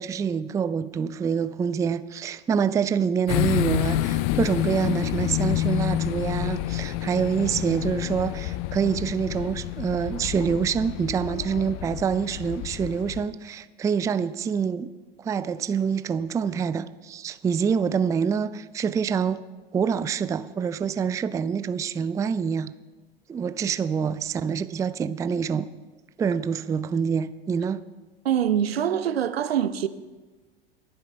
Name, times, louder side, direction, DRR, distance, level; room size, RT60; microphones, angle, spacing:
voice 1, 0.0-14.9 15.2-19.4 19.7-22.7 23.3-25.7 26.2-27.8, right 6 dB, 10° right, 0.4 m, -26 dB
sound 1, 3.3-13.2, left 15 dB, 45° left, 0.6 m, -28 dB
voice 2, 28.2-29.9, right 9 dB, 80° right, 0.8 m, -24 dB
23.0 x 7.9 x 4.5 m
figure-of-eight pair, 85°, 30 cm